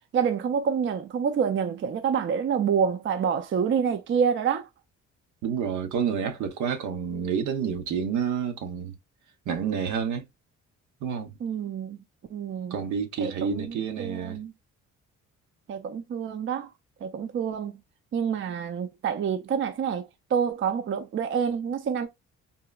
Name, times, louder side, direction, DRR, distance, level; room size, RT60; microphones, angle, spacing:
voice 1, 0.1-4.7 11.4-12.0 12.3-12.8 13.2-14.5 15.7-16.7 17.0-17.8 18.1-22.1, right 7 dB, 40° right, 0.5 m, -27 dB
voice 2, 5.4-8.9 9.5-10.3 11.0-11.3 12.7-14.4, right 7 dB, 75° right, 0.8 m, -29 dB
3.8 x 2.1 x 2.2 m
cardioid pair, 90°, 30 cm